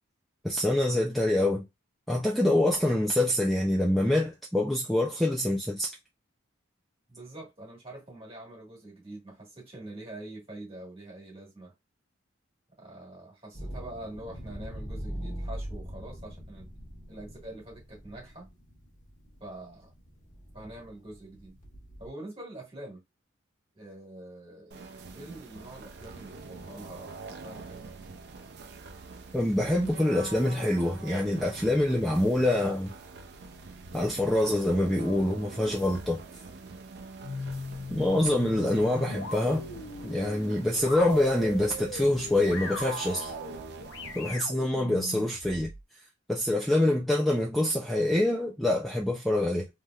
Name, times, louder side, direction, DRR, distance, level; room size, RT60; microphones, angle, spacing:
voice 1, 0.4-1.6 2.1-5.9 29.3-32.9 33.9-36.2 37.9-39.6 40.0-43.3 44.2-45.7 46.3-49.7, left 1 dB, ahead, 0.4 m, -25 dB
voice 2, 7.1-11.7 12.8-16.7 17.1-18.5 19.4-19.9 20.5-21.6 22.0-23.0 23.7-27.8, right 1 dB, 30° right, 1.6 m, -45 dB
sound 1, 13.5-22.1, equal, 35° left, 1.3 m, -42 dB
sound 2, 24.7-44.3, right 4 dB, 55° right, 0.5 m, -44 dB
sound 3, 37.2-45.8, left 3 dB, 75° left, 0.6 m, -39 dB
3.2 x 2.7 x 2.4 m
head